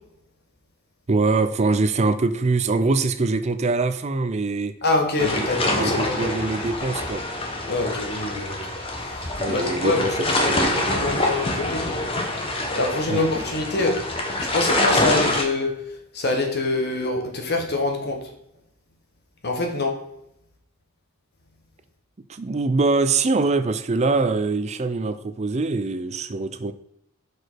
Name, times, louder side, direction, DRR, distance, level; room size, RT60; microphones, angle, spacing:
voice 1, 1.1-4.7 5.2-5.5 5.8-7.2 9.4-11.2 13.1-13.2 22.3-26.7, right 3 dB, 30° right, 11 dB, 0.5 m, -23 dB
voice 2, 4.8-6.3 7.7-8.6 9.5-10.1 10.4-12.0 12.8-14.1 14.4-15.7 16.1-18.2 19.4-20.0, left 2 dB, 50° left, 3 dB, 1.4 m, -25 dB
sound 1, 5.2-15.4, left 1 dB, 25° left, 1.2 m, -25 dB
6.3 x 4.9 x 4.6 m, 0.75 s
head